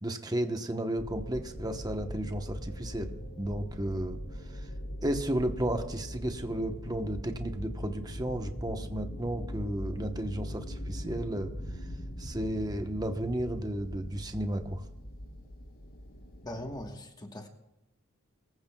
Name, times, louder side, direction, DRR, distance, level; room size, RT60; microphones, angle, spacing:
voice 1, 0.0-4.2 4.5-4.7 5.0-11.5 12.2-14.8, right 1 dB, 20° right, 6 dB, 1.0 m, -33 dB
sound 1, 1.0-16.9, equal, 80° left, 3.8 m, -41 dB
voice 2, 16.4-17.5, left 1 dB, 20° left, 4 dB, 1.3 m, -40 dB
24.0 x 15.0 x 2.3 m, 0.94 s
head